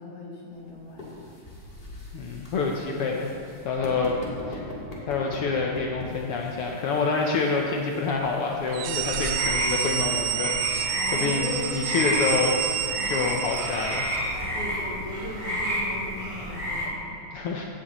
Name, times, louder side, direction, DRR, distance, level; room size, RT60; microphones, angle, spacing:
voice 1, 0.0-1.3 10.9-11.7 13.0-13.1 14.3-17.2, left 1 dB, 55° left, -5 dB, 2.9 m, -38 dB
sound 1, 0.5-14.5, left 1 dB, 20° left, 1.6 m, -44 dB
voice 2, 2.1-3.3 3.6-4.1 4.5-4.7 5.1-12.5 13.1-14.2 17.3-17.7, left 4 dB, 80° left, 0 dB, 1.3 m, -27 dB
sound 2, 8.7-14.4, right 11 dB, 80° right, 1.9 m, -29 dB
sound 3, 8.8-16.9, equal, 20° right, 3.0 m, -31 dB
16.0 x 9.7 x 3.1 m, 2.7 s
omnidirectional pair, 3.5 m